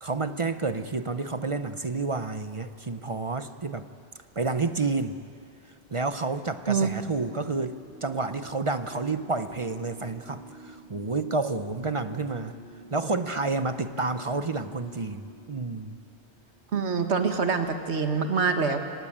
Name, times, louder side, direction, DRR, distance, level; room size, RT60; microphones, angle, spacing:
voice 1, 0.0-3.9 4.4-5.2 5.9-12.5 12.9-16.0, right 3 dB, 35° right, 10 dB, 0.7 m, -30 dB
sound 1, 7.4-16.1, equal, 60° right, 3.4 m, -49 dB
voice 2, 16.7-18.8, right 5 dB, 85° right, 6 dB, 1.8 m, -25 dB
28.0 x 17.5 x 8.6 m, 2.4 s
omnidirectional pair, 1.1 m